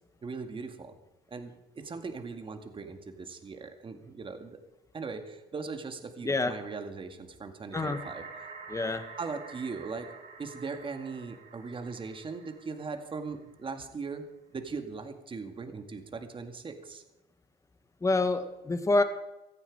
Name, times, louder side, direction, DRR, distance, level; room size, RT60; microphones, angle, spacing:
voice 1, 0.2-0.9 1.3-4.6 4.9-8.2 9.2-10.1 10.4-14.2 14.5-17.0, right 4 dB, 30° right, 6 dB, 2.1 m, -39 dB
sound 1, 7.7-13.4, right 5 dB, 65° right, 4.7 m, -47 dB
voice 2, 8.7-9.0 18.0-19.0, left 2 dB, 20° left, 9 dB, 1.8 m, -27 dB
17.0 x 14.0 x 5.0 m, 0.99 s
cardioid pair, 110°, 17 cm